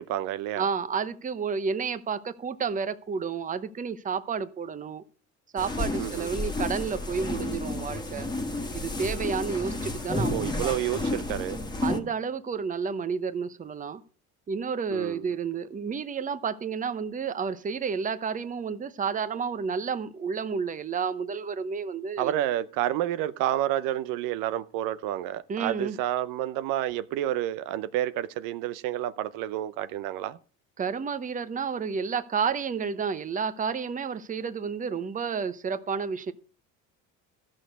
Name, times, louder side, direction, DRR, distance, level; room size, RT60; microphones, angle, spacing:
voice 1, 0.0-0.7 6.0-6.3 10.3-11.6 14.9-15.3 22.2-30.4, right 13 dB, 75° right, 0.8 m, -29 dB
voice 2, 0.6-5.0 5.5-8.3 8.7-10.8 11.8-14.0 14.5-22.5 25.5-26.0 30.8-36.3, right 6 dB, 25° right, 0.9 m, -31 dB
sound 1, 5.6-12.0, left 2 dB, 10° left, 1.6 m, -31 dB
13.5 x 6.4 x 6.6 m
cardioid pair, 115°, 33 cm